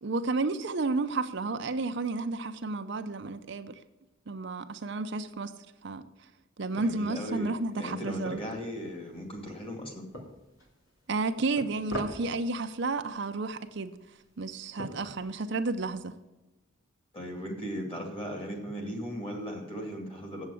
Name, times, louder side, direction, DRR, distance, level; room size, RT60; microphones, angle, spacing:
voice 1, 0.0-3.7 4.3-5.6 5.8-6.0 6.6-8.4 11.1-14.0 14.4-16.2, right 3 dB, 60° right, 0.6 m, -32 dB
sound 1, 6.7-16.1, equal, 90° left, 2.8 m, -46 dB
voice 2, 6.7-10.0 17.1-20.5, equal, 25° left, 2.4 m, -37 dB
8.0 x 7.5 x 8.5 m
head